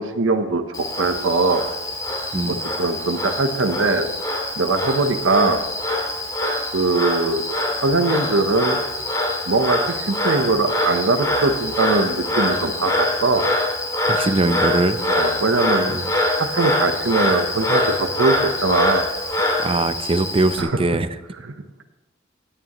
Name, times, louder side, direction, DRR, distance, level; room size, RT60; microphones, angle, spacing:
voice 1, 0.0-1.6 2.8-4.1 4.6-5.6 6.7-7.4 7.8-8.8 9.5-13.4 15.1-15.9 16.4-19.0 20.6-20.7, right 3 dB, 85° right, 7 dB, 0.9 m, -21 dB
Frog, 0.7-20.6, left 1 dB, 20° left, 2.0 m, -24 dB
voice 2, 14.1-15.0 15.9-16.1 19.6-21.1, right 2 dB, 30° right, 11 dB, 0.5 m, -21 dB
16.5 x 8.9 x 3.0 m, 0.99 s
head